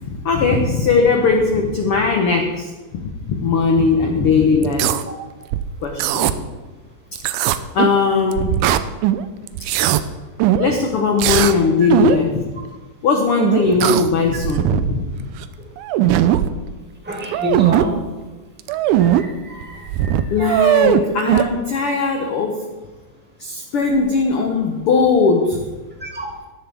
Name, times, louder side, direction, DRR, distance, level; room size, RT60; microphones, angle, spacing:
voice 1, 0.0-3.0 3.3-4.9 5.8-6.3 7.7-8.5 9.7-9.8 10.6-12.4 13.0-15.0 20.3-22.5 23.4-25.6, left 4 dB, 85° left, 1 dB, 1.2 m, -18 dB
sound 1, 4.6-5.0 5.5-6.3 7.2-8.0 8.3-9.2 9.5-10.0 10.4-10.7 11.2-11.6 11.9-12.2 13.4-14.1 14.4-15.0 15.4-15.5 15.8-16.5 17.1-17.9 18.6-19.2 19.6-19.7 19.9-21.4, right 12 dB, 85° right, 1.8 m, -18 dB
voice 2, 17.0-17.9 19.0-20.1 26.0-26.2, equal, 5° right, -2 dB, 1.1 m, -28 dB
14.5 x 10.5 x 3.5 m, 1.2 s
omnidirectional pair, 4.1 m